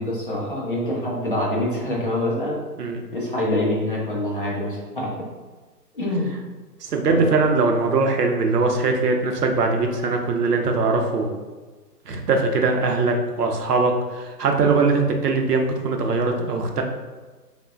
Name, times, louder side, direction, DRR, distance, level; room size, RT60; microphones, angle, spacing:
voice 1, 0.0-2.6 3.1-5.1 5.9-6.4 7.1-7.3, left 1 dB, 35° left, -4 dB, 0.5 m, -25 dB
voice 2, 6.8-11.4 12.1-16.8, right 3 dB, 70° right, 3 dB, 0.6 m, -21 dB
3.2 x 2.1 x 2.3 m, 1.3 s
figure-of-eight pair, 150°, 49 cm